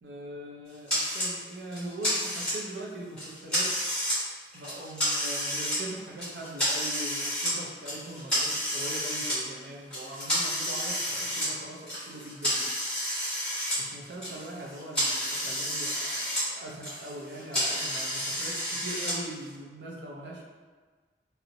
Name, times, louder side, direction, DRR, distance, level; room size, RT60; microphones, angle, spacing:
voice 1, 0.0-3.7 4.5-12.7 13.8-20.4, right 1 dB, 80° right, -1 dB, 0.5 m, -41 dB
sound 1, 0.9-1.3 1.7-2.8 3.2-4.2 4.5-5.8 6.2-7.5 7.9-9.4 9.9-13.8 14.1-16.4 16.7-19.1, equal, 5° left, 1.0 m, -30 dB
2.7 x 2.0 x 2.6 m, 1.4 s
head